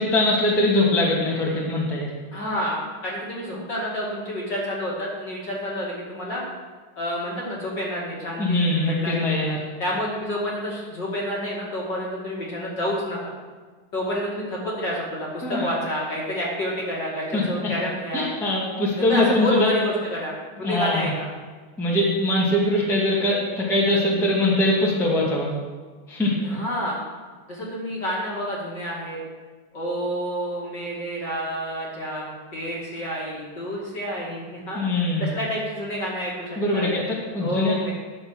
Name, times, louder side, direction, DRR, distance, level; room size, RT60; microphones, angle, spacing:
voice 1, 0.0-2.1 8.4-9.6 15.4-15.7 17.3-17.4 18.1-19.7 20.6-21.1 21.8-25.5 26.1-26.6 34.7-35.3 36.5-37.7, left 1 dB, ahead, -5 dB, 1.3 m, -22 dB
voice 2, 2.3-6.4 7.0-9.4 9.8-13.2 13.9-18.3 19.0-21.3 26.4-27.0 27.5-29.2 29.7-34.8 35.2-36.9 37.4-37.9, equal, 35° left, -5 dB, 2.4 m, -29 dB
11.5 x 6.8 x 6.4 m, 1.4 s
omnidirectional pair, 4.0 m